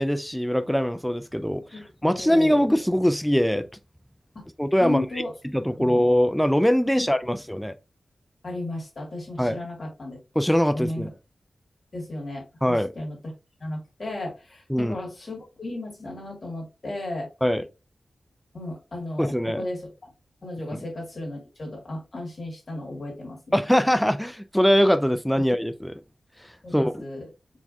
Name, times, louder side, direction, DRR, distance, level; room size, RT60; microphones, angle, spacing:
voice 1, 0.0-3.7 4.6-5.0 5.5-7.7 9.4-9.6 10.4-11.1 12.6-12.9 14.7-15.0 17.4-17.6 19.2-19.6 20.7-20.8 23.5-26.0 26.7-27.0, equal, ahead, 0.3 m, -22 dB
voice 2, 1.5-1.9 2.1-2.6 4.3-4.5 4.8-5.3 5.8-6.0 6.9-7.4 8.4-10.2 10.7-11.1 11.9-13.2 13.6-17.3 18.5-20.1 20.4-23.6 25.4-25.5 26.6-27.3, left 1 dB, 40° left, 2.4 m, -35 dB
4.7 x 3.5 x 2.6 m
wide cardioid pair, 120°, 0 cm